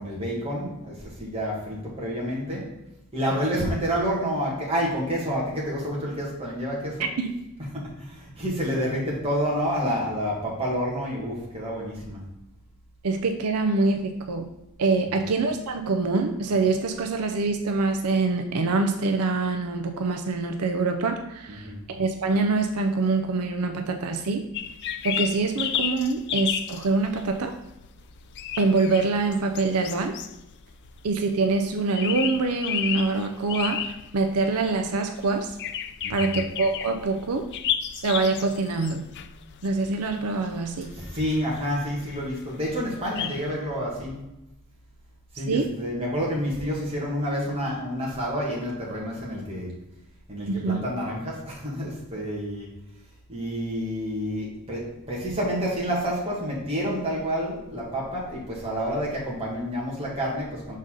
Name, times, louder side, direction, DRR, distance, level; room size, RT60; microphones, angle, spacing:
voice 1, 0.0-2.7 3.1-7.1 7.7-12.2 15.2-15.3 21.5-21.9 36.0-36.4 40.9-44.2 45.3-49.7 50.3-52.7 53.3-60.8, equal, 25° right, -5 dB, 1.8 m, -29 dB
voice 2, 13.0-14.5 14.8-24.5 25.0-27.5 28.6-30.2 31.0-35.5 36.1-37.5 38.0-39.0 39.6-40.9 45.5-45.7 50.5-50.8, right 3 dB, 85° right, 6 dB, 0.5 m, -25 dB
sound 1, 24.5-43.5, left 9 dB, 50° left, 0.3 m, -33 dB
6.3 x 4.1 x 3.7 m, 0.90 s
head